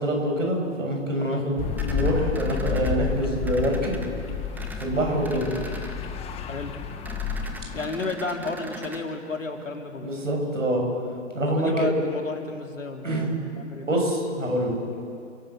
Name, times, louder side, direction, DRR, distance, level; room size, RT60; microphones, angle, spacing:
voice 1, 0.0-1.5 1.9-4.0 4.8-5.5 10.0-10.8 11.3-11.9 13.0-13.3 13.8-14.8, right 1 dB, 85° right, 1 dB, 6.9 m, -25 dB
sound 1, 1.6-7.9, left 7 dB, 15° left, 1.2 m, -30 dB
sound 2, 1.8-2.9 3.5-4.1 4.5-4.9 5.2-5.9 7.1-9.0, right 3 dB, 5° right, 1.3 m, -40 dB
voice 2, 7.7-10.1 11.5-14.0, left 3 dB, 85° left, 3 dB, 3.0 m, -32 dB
29.5 x 12.0 x 7.7 m, 2.4 s
figure-of-eight pair, 130°, 37 cm